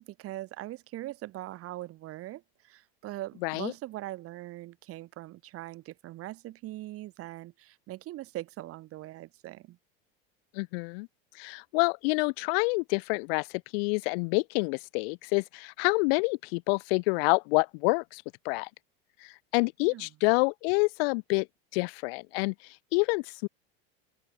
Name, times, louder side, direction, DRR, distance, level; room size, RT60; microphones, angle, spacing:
voice 1, 0.0-9.8 19.8-20.1, right 16 dB, 45° right, 2.7 m, -41 dB
voice 2, 3.4-3.7 10.5-11.1 11.3-18.7 19.2-21.5 21.7-23.5, left 31 dB, 70° left, 1.5 m, -28 dB
supercardioid pair, 120°, 31 cm